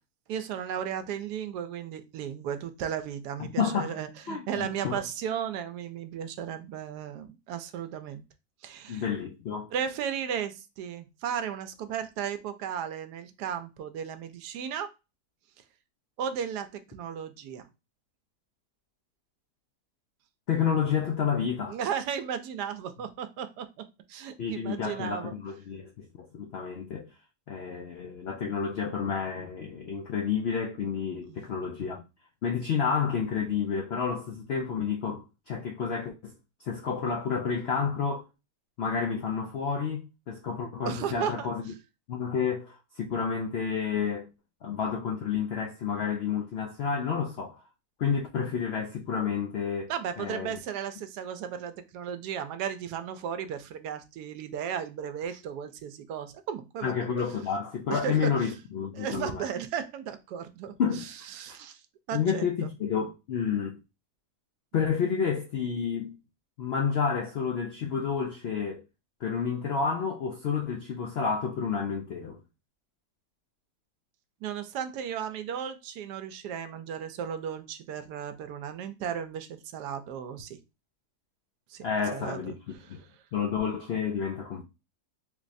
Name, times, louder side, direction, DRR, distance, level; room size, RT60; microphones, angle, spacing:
voice 1, 0.3-8.2 8.6-9.0 9.7-14.9 16.2-17.6 21.7-23.7 24.1-25.3 31.3-31.4 40.8-41.5 49.9-57.0 57.9-58.3 58.9-60.7 61.3-61.8 62.1-62.7 74.4-80.6 81.7-81.8 82.1-83.0, right 8 dB, 85° right, 1.1 m, -35 dB
voice 2, 3.4-3.9 4.3-5.0 8.9-9.7 20.5-21.8 24.4-27.1 27.5-32.0 32.4-36.3 36.7-38.2 38.8-41.7 42.1-44.3 44.6-47.6 48.0-49.9 50.2-50.6 56.8-59.4 60.8-61.1 62.1-63.8 64.7-66.2 66.6-68.8 69.2-72.4 81.8-83.0 83.3-84.6, left 6 dB, 85° left, 0.5 m, -30 dB
3.5 x 3.0 x 2.6 m
omnidirectional pair, 1.7 m